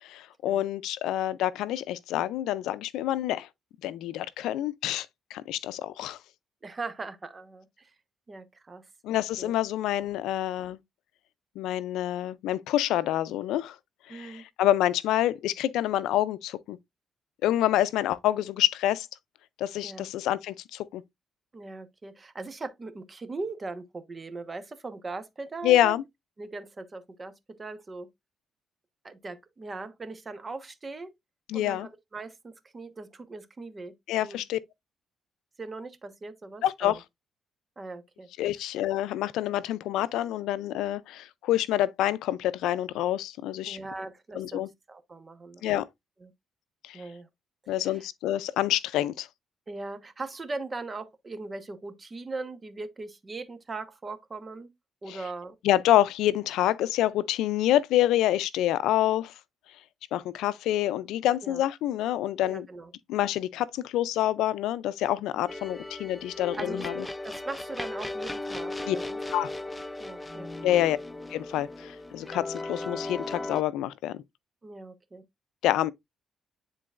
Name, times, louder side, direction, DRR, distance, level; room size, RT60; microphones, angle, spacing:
voice 1, 0.0-3.5 3.8-5.1 5.3-6.2 9.0-10.8 11.6-13.8 14.1-16.8 17.4-19.1 19.6-21.0 25.6-26.0 31.5-31.9 34.1-34.6 36.6-37.0 38.4-43.8 44.3-44.7 45.6-45.9 46.8-47.0 47.7-49.3 55.1-55.2 55.6-59.3 60.1-62.7 63.1-67.0 68.9-69.0 69.3-69.5 70.6-71.0 71.3-74.2 75.6-75.9, left 13 dB, 90° left, 0.4 m, -27 dB
voice 2, 6.6-7.9 8.3-8.8 9.4-9.5 14.1-14.4 19.8-20.1 21.5-26.0 26.4-27.3 27.6-28.1 29.0-31.1 31.5-33.9 34.2-34.4 35.6-37.0 37.8-38.3 38.5-38.7 43.7-44.6 44.9-45.7 46.2-46.3 46.9-47.3 47.6-48.1 49.7-54.7 55.0-55.5 61.4-61.6 62.4-62.9 66.6-66.9 67.2-69.2 70.0-70.9 74.6-75.2, right 3 dB, 30° right, 1.1 m, -40 dB
sound 1, 65.5-73.6, left 2 dB, 15° left, 0.5 m, -36 dB
9.8 x 3.9 x 2.4 m
cardioid pair, 90°, 0 cm